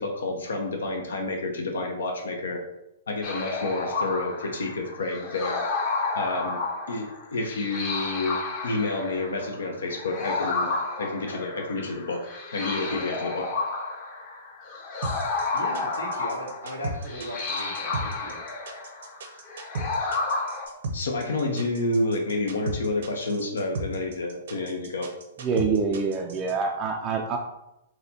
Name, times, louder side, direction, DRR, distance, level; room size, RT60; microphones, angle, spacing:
voice 1, 0.0-2.6 3.1-5.6 6.1-6.6 6.9-8.4 8.6-10.7 11.0-12.2 12.5-13.4 20.9-25.1, left 2 dB, 70° left, 3 dB, 0.6 m, -29 dB
sound 1, 3.2-20.6, left 3 dB, 35° left, 0.9 m, -31 dB
sound 2, 15.0-26.5, right 2 dB, 65° right, 0.7 m, -34 dB
voice 2, 15.5-18.4, equal, 85° left, -3 dB, 1.4 m, -37 dB
voice 3, 25.4-27.4, right 5 dB, 30° right, 2 dB, 0.4 m, -26 dB
4.0 x 2.9 x 2.7 m, 0.88 s
figure-of-eight pair, 115°, 0 cm